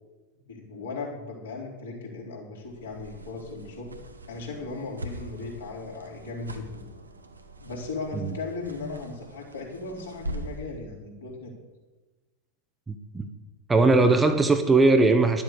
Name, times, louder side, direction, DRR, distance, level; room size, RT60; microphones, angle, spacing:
voice 1, 0.5-4.0 4.3-6.8 7.6-11.5, left 3 dB, 65° left, -2 dB, 3.9 m, -37 dB
sound 1, 2.6-10.7, right 1 dB, 80° right, 1.1 m, -42 dB
voice 2, 12.9-13.3 13.7-15.4, right 3 dB, 10° right, 7 dB, 0.9 m, -20 dB
11.5 x 7.6 x 6.9 m, 1.2 s
figure-of-eight pair, 90°, 0 cm